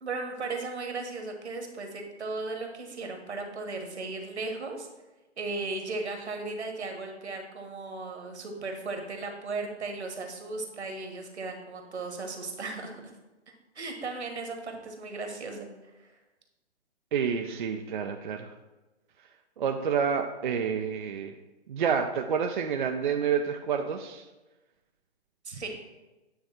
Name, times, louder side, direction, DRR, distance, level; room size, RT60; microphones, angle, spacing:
voice 1, 0.0-4.9 5.4-13.0 13.7-15.7 16.0-16.1 25.4-25.7, right 3 dB, 70° right, 4 dB, 1.3 m, -36 dB
voice 2, 17.1-18.5 19.6-21.3 21.7-24.2, right 7 dB, 45° right, 4 dB, 0.5 m, -28 dB
8.9 x 3.3 x 4.1 m, 1.1 s
figure-of-eight pair, 130°, 35 cm